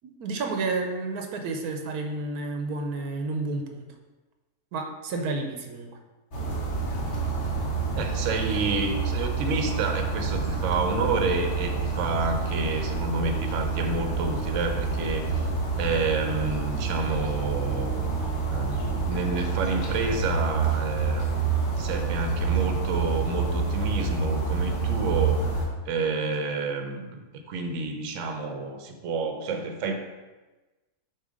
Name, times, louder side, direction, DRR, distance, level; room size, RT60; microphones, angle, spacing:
voice 1, 0.0-3.9 4.7-6.0, right 3 dB, 85° right, 4 dB, 1.2 m, -31 dB
sound 1, 6.3-25.7, right 5 dB, 50° left, 1.2 m, -28 dB
voice 2, 8.0-15.5 15.8-18.1 18.5-21.4 21.8-27.2 27.5-29.9, right 3 dB, 60° right, 4 dB, 0.9 m, -29 dB
6.6 x 2.9 x 5.0 m, 1.2 s
omnidirectional pair, 1.6 m